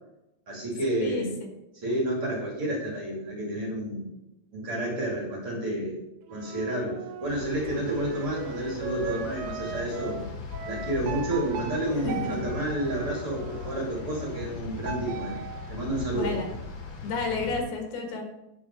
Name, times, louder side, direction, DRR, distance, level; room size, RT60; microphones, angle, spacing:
voice 1, 0.5-1.3 1.7-4.1 4.5-6.0 6.3-10.2 10.7-15.4 15.7-16.4, right 1 dB, 35° right, -4 dB, 3.2 m, -30 dB
Wind instrument woodwind instrument, 6.3-10.2 10.5-14.5, right 5 dB, 70° right, 2.5 m, -40 dB
sound 1, 7.3-17.6, left 5 dB, 65° left, 2.5 m, -39 dB
sound 2, 11.0-13.7 14.8-16.6, right 9 dB, 90° right, 2.7 m, -40 dB
voice 2, 12.0-12.5 16.1-16.5 17.0-18.3, left 3 dB, 80° left, 2 dB, 3.2 m, -31 dB
10.0 x 5.7 x 4.7 m, 0.91 s
omnidirectional pair, 4.5 m